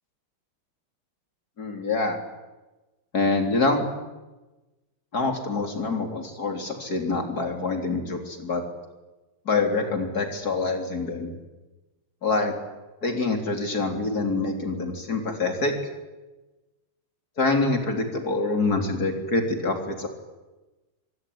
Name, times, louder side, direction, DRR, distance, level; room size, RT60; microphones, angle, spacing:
voice 1, 1.6-2.2 3.1-3.9 5.1-8.6 9.5-11.3 12.2-12.5 13.0-15.8 17.4-20.1, left 3 dB, 45° left, 4 dB, 4.2 m, -25 dB
25.5 x 23.5 x 9.6 m, 1.1 s
omnidirectional pair, 2.3 m